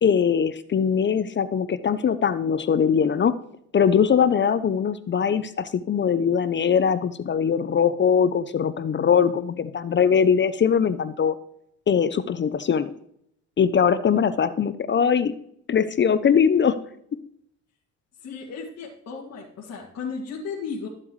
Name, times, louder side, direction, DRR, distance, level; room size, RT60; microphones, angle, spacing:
voice 1, 0.0-3.3 3.7-11.3 11.9-12.9 13.6-15.3 15.7-16.8, left 7 dB, 40° left, 13 dB, 0.6 m, -21 dB
voice 2, 18.2-20.9, left 5 dB, 60° left, -5 dB, 2.3 m, -34 dB
13.5 x 7.4 x 3.2 m, 0.72 s
cardioid pair, 90°, 30 cm